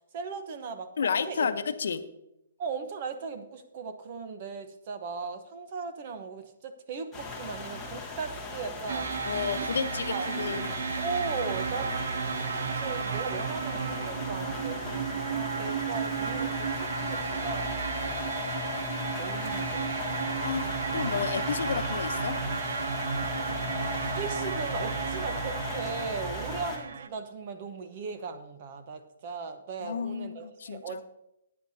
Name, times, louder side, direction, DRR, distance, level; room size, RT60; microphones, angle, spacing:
voice 1, 0.1-0.9 1.3-1.5 2.6-9.1 9.6-9.7 10.1-10.3 11.0-11.9 12.8-17.7 18.4-18.6 19.2-20.4 23.3-31.0, right 5 dB, 35° right, 8 dB, 0.9 m, -38 dB
voice 2, 1.0-2.0 9.3-10.7 20.4-22.4 29.8-31.0, left 6 dB, 70° left, 10 dB, 0.8 m, -31 dB
sound 1, 7.1-26.8, left 3 dB, ahead, 1.6 m, -37 dB
sound 2, 8.9-27.1, right 6 dB, 75° right, 0.6 m, -34 dB
14.0 x 9.6 x 2.8 m, 0.85 s
hypercardioid pair, 170°, 0 cm